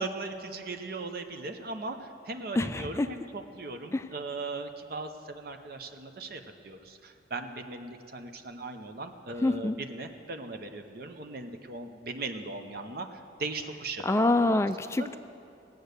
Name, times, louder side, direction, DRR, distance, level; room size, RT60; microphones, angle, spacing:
voice 1, 0.0-14.6 15.0-15.2, right 3 dB, 55° right, 6 dB, 0.7 m, -38 dB
voice 2, 2.5-3.1 3.9-4.1 9.4-9.8 14.0-15.2, left 2 dB, 15° left, 11 dB, 0.3 m, -26 dB
19.0 x 7.9 x 6.6 m, 2.6 s
head